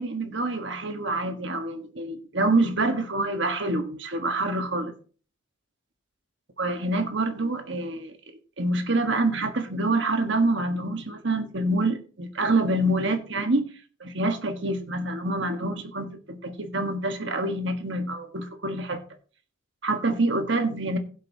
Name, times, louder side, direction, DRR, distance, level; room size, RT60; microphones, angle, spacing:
voice 1, 0.0-4.9 6.6-8.2 8.6-13.6 14.0-19.0 19.8-21.0, right 2 dB, 60° right, 1.4 m, -26 dB
16.5 x 7.7 x 2.8 m
head